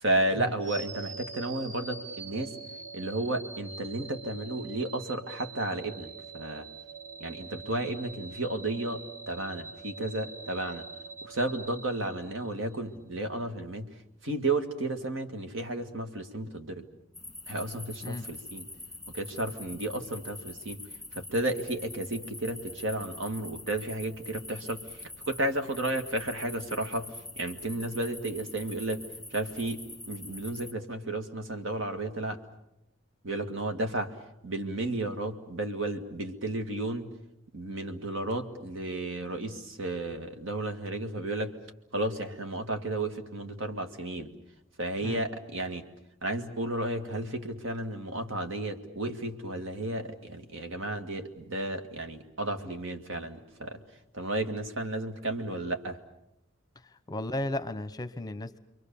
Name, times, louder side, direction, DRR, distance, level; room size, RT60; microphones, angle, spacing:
voice 1, 0.0-2.5 2.9-6.7 7.2-10.9 11.2-13.9 14.2-16.9 17.5-18.7 19.1-20.8 21.1-29.0 29.3-32.4 33.2-34.2 34.4-37.1 37.5-41.5 41.9-44.3 44.8-45.8 46.2-53.8 54.1-56.0, right 2 dB, 65° right, 6 dB, 2.0 m, -33 dB
sound 1, 0.6-12.7, right 5 dB, 35° right, 1.6 m, -44 dB
sound 2, 17.1-30.7, left 2 dB, ahead, 1.9 m, -44 dB
voice 2, 57.1-58.6, left 1 dB, 20° left, 12 dB, 0.9 m, -34 dB
29.0 x 23.5 x 7.0 m, 0.83 s
head